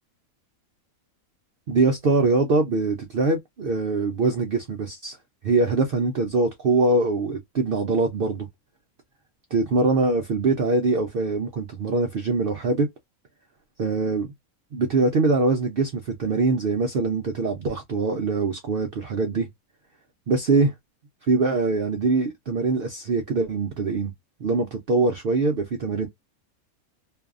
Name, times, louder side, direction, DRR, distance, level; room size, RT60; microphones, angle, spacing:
voice 1, 1.7-5.2 5.4-8.5 9.5-12.9 13.8-14.3 14.7-19.5 20.3-20.7 21.3-24.1 24.4-26.1, right 3 dB, 75° right, 0.5 m, -23 dB
2.6 x 2.3 x 2.4 m
omnidirectional pair, 1.5 m